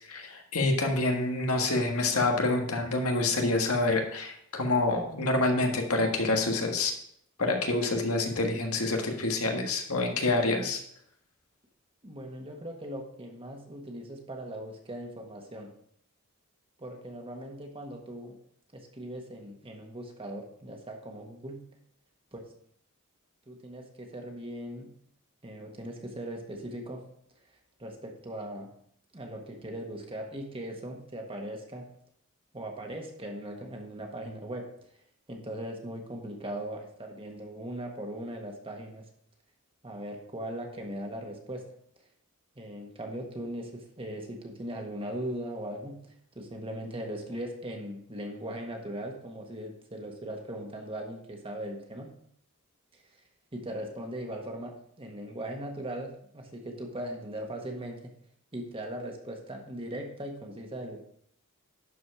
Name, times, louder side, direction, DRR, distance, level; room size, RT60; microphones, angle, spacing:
voice 1, 0.1-6.9 7.4-10.8, left 2 dB, 85° left, 2 dB, 1.6 m, -27 dB
voice 2, 12.0-15.7 16.8-18.4 18.7-21.6 22.3-22.4 23.5-24.9 25.4-27.0 27.8-28.7 29.1-31.8 32.5-34.6 35.3-39.0 39.8-41.6 42.5-46.0 46.3-52.1 52.9-53.0 53.5-58.0 58.5-61.0, right 1 dB, 25° right, 2 dB, 1.5 m, -39 dB
11.5 x 4.9 x 4.7 m, 0.67 s
head